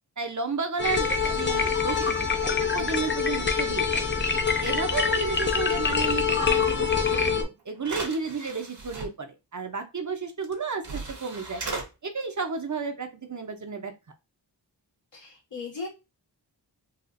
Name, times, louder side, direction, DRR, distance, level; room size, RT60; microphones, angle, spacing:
voice 1, 0.2-4.1 4.6-11.6 12.0-13.9, right 4 dB, 40° right, 6 dB, 0.6 m, -32 dB
sound 1, 0.8-7.4, left 5 dB, 25° left, 0.4 m, -25 dB
sound 2, 7.3-7.4 7.8-9.1 10.4-10.5 10.8-11.9, right 3 dB, 65° right, 1.1 m, -36 dB
voice 2, 15.1-15.9, left 4 dB, 85° left, -5 dB, 1.8 m, -37 dB
4.2 x 2.4 x 2.5 m, 0.25 s
wide cardioid pair, 80°, 44 cm